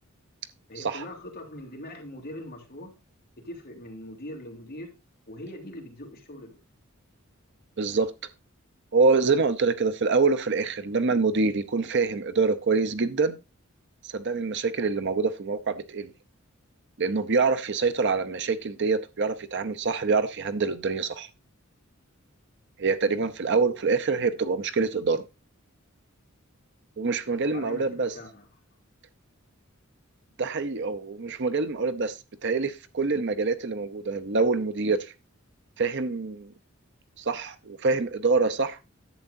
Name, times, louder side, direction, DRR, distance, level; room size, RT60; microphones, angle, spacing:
voice 1, 0.7-2.9 3.4-5.0 5.3-6.6 27.2-28.5, left 1 dB, 50° left, 2.7 m, -41 dB
voice 2, 7.8-8.1 8.9-13.4 14.1-16.1 17.0-21.3 22.8-25.2 27.0-28.1 30.4-32.2 32.4-35.1 35.8-36.5 37.2-38.8, right 4 dB, 55° right, 0.7 m, -25 dB
11.0 x 7.9 x 2.6 m
head